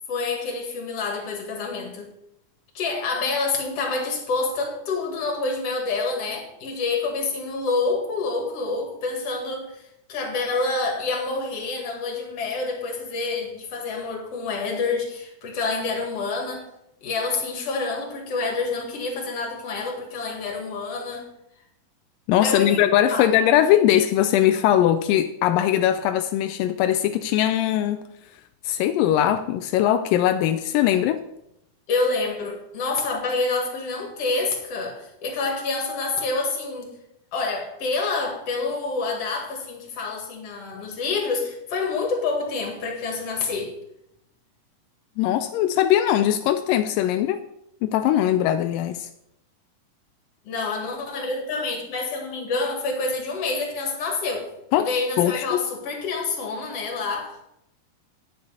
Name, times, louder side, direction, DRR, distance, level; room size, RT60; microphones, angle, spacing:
voice 1, 0.1-2.1 2.7-9.8 10.1-16.7 17.0-21.3 22.4-22.8 23.1-23.3 31.9-36.9 37.3-43.7 50.4-54.5 54.8-57.5, left 3 dB, 50° left, 2.8 m, -27 dB
voice 2, 22.3-28.0 28.6-31.2 45.2-47.4 47.8-49.1 54.7-54.9 55.2-55.6, left 11 dB, 85° left, 2.2 m, -20 dB
10.5 x 5.3 x 6.9 m
omnidirectional pair, 3.9 m